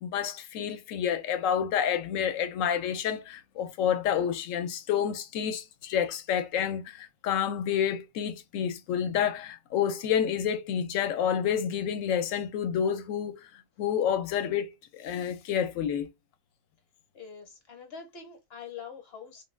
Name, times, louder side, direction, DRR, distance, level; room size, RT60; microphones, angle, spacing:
voice 1, 0.0-16.1, left 8 dB, 75° left, 0.9 m, -29 dB
voice 2, 17.1-19.4, left 6 dB, 55° left, 0.9 m, -44 dB
2.4 x 2.2 x 3.2 m
omnidirectional pair, 1.4 m